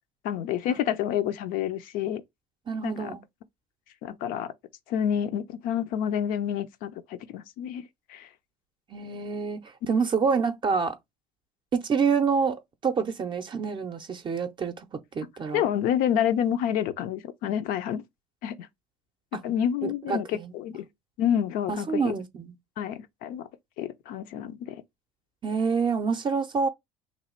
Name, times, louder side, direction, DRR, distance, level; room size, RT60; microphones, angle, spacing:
voice 1, 0.2-2.2 2.8-3.1 4.0-4.5 4.9-8.3 15.5-18.1 18.4-18.7 19.4-20.8 21.2-22.1 22.8-23.5 23.8-24.8, left 9 dB, 70° left, 0.5 m, -28 dB
voice 2, 2.7-3.2 8.9-11.0 11.7-14.9 15.1-15.6 19.8-20.9 21.7-22.5 25.4-26.7, right 5 dB, 30° right, 0.5 m, -27 dB
3.1 x 2.3 x 4.3 m
supercardioid pair, 95°, 15 cm